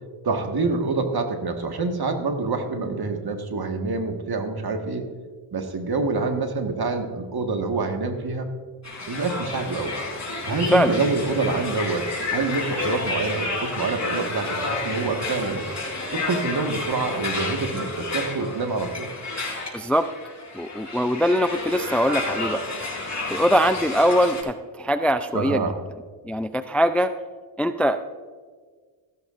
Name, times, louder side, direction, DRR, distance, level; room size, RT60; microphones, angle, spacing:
voice 1, 0.2-5.1 5.5-8.5 9.1-10.0 10.5-15.6 16.1-19.1 25.3-25.7, right 3 dB, 50° right, 4 dB, 1.8 m, -26 dB
sound 1, 8.8-24.4, left 3 dB, 35° left, 4.0 m, -31 dB
voice 2, 19.7-20.1 20.5-22.6 23.3-25.6 26.2-27.1 27.6-28.0, equal, 5° left, 10 dB, 0.4 m, -22 dB
15.0 x 13.0 x 2.6 m, 1.5 s
cardioid pair, 55°, 48 cm